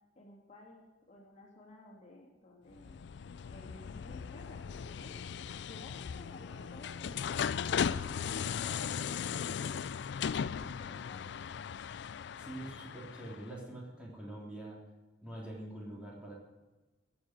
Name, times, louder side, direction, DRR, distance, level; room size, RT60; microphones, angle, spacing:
voice 1, 0.1-3.0 3.5-5.2 5.6-9.8 10.2-11.4, left 1 dB, 40° left, -2 dB, 2.7 m, -54 dB
sound 1, 2.7-13.5, left 7 dB, 65° left, 0.4 m, -37 dB
voice 2, 12.4-14.8 15.2-16.3, right 1 dB, 5° right, -4 dB, 3.3 m, -45 dB
17.0 x 7.4 x 7.8 m, 1.2 s
head